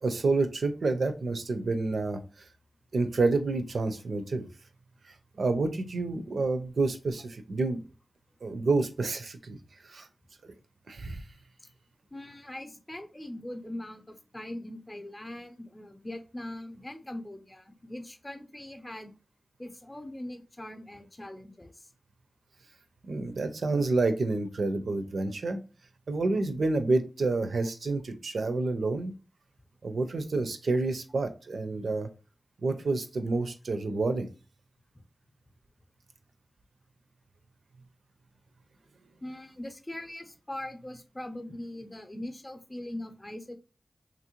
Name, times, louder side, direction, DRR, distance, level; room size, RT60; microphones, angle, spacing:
voice 1, 0.0-2.5 2.9-4.5 5.4-7.8 8.4-9.6 9.8-10.1 10.4-10.5 10.9-11.2 23.0-25.6 26.1-29.1 29.8-32.1 32.6-34.3, right 3 dB, 75° right, 8 dB, 0.4 m, -29 dB
voice 2, 12.1-19.1 19.6-21.9 39.2-43.5, left 1 dB, 25° left, 5 dB, 0.6 m, -41 dB
3.0 x 2.5 x 2.9 m, 0.33 s
cardioid pair, 55°, 0 cm